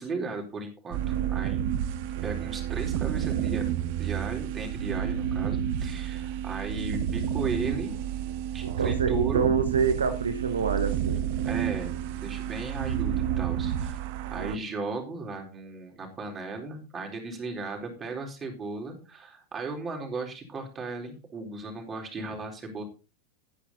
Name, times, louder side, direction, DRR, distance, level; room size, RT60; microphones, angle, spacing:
voice 1, 0.0-1.7 2.2-3.7 4.0-7.9 8.5-9.5 11.4-11.9 12.2-22.8, right 3 dB, 20° right, 2 dB, 4.1 m, -36 dB
sound 1, 0.9-14.6, right 10 dB, 50° right, 0.8 m, -30 dB
voice 2, 8.6-11.3 14.3-14.6, right 6 dB, 70° right, 8 dB, 1.1 m, -27 dB
12.0 x 10.0 x 4.0 m, 0.32 s
figure-of-eight pair, 90°, 0 cm